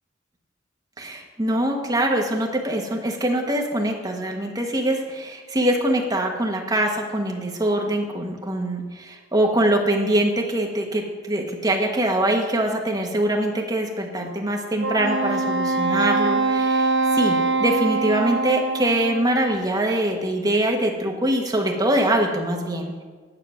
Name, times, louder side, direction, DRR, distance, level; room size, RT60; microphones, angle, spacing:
voice 1, 1.0-22.9, right 1 dB, 20° right, 1 dB, 1.2 m, -23 dB
Wind instrument woodwind instrument, 14.8-19.4, right 3 dB, 65° right, 0.8 m, -23 dB
9.9 x 6.6 x 6.2 m, 1.4 s
head